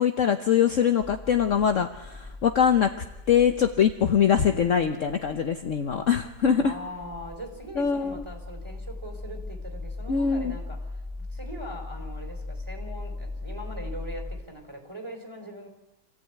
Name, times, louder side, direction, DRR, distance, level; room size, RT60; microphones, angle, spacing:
voice 1, 0.0-2.9 3.3-6.7 7.8-8.2 10.1-10.5, left 8 dB, 55° left, 7 dB, 1.2 m, -23 dB
sound 1, 1.0-14.4, left 2 dB, 25° left, 2.8 m, -39 dB
voice 2, 4.2-5.2 6.6-15.7, equal, 15° right, 2 dB, 4.1 m, -41 dB
27.0 x 15.5 x 9.3 m, 1.0 s
omnidirectional pair, 1.8 m